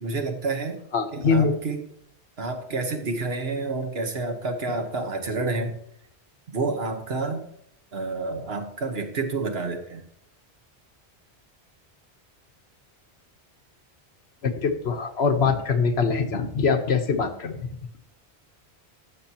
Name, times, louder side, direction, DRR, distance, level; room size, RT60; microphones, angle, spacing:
voice 1, 0.0-0.8 1.1-1.9 2.4-5.8 6.5-7.5 7.9-10.0, right 3 dB, 70° right, 5 dB, 1.4 m, -29 dB
voice 2, 0.9-1.5 14.4-17.7, left 5 dB, 75° left, 7 dB, 1.2 m, -23 dB
15.0 x 6.4 x 2.9 m, 0.69 s
omnidirectional pair, 1.1 m